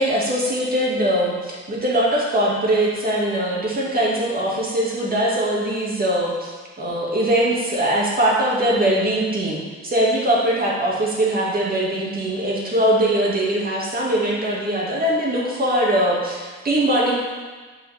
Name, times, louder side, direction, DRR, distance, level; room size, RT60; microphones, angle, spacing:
voice 1, 0.0-6.5 6.8-17.2, right 1 dB, 30° right, -4 dB, 2.2 m, -21 dB
8.2 x 5.4 x 3.6 m, 1.4 s
cardioid pair, 90°, 30 cm